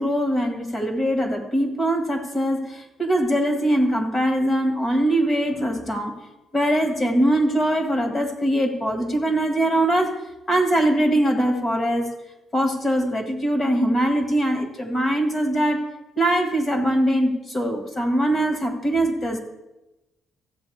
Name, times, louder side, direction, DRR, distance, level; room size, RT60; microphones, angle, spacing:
voice 1, 0.0-6.1 6.5-10.2 10.5-12.1 12.5-15.9 16.2-19.4, right 1 dB, 35° left, 4 dB, 1.8 m, -22 dB
14.5 x 7.4 x 3.4 m, 0.99 s
cardioid pair, 90°, 0 cm